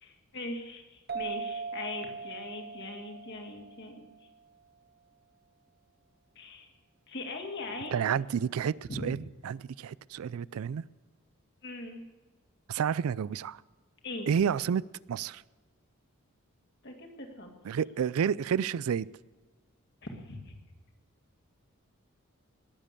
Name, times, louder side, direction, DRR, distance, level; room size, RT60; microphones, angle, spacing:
voice 1, 0.0-4.1 6.4-6.7 7.1-8.1 8.9-9.1 11.6-12.0 14.0-14.3 16.8-17.5 20.0-20.6, left 2 dB, 50° left, 3 dB, 2.0 m, -40 dB
sound 1, 1.1-4.4, right 5 dB, 45° right, 1.2 m, -40 dB
voice 2, 7.9-9.2 9.4-10.8 12.7-13.6 14.3-14.8 15.1-15.4 17.6-19.1, right 7 dB, 75° right, 21 dB, 0.3 m, -30 dB
20.0 x 7.5 x 6.7 m, 1.3 s
head